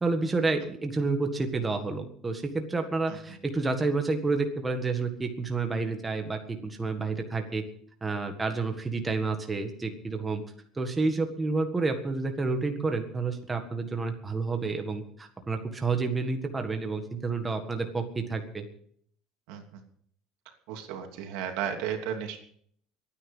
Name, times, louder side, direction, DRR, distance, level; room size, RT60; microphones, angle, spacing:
voice 1, 0.0-7.6 8.0-10.4 10.8-18.7, right 3 dB, 10° right, 5 dB, 1.7 m, -29 dB
voice 2, 20.7-22.4, right 8 dB, 70° right, 4 dB, 2.9 m, -33 dB
22.0 x 9.7 x 5.6 m, 0.62 s
cardioid pair, 165°, 0 cm